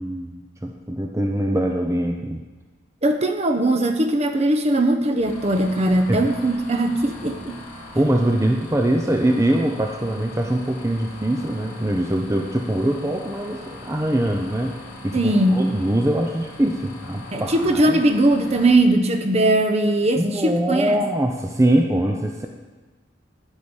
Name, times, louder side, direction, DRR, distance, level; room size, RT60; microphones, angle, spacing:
voice 1, 0.0-2.4 6.1-6.2 7.9-14.7 15.0-18.0 20.2-22.5, right 1 dB, 15° right, 2 dB, 0.7 m, -23 dB
voice 2, 3.0-7.6 15.1-15.7 17.3-21.0, right 1 dB, 35° right, 5 dB, 1.0 m, -20 dB
sound 1, 5.2-18.7, left 2 dB, 30° left, 3.8 m, -40 dB
12.5 x 5.1 x 8.9 m, 1.3 s
head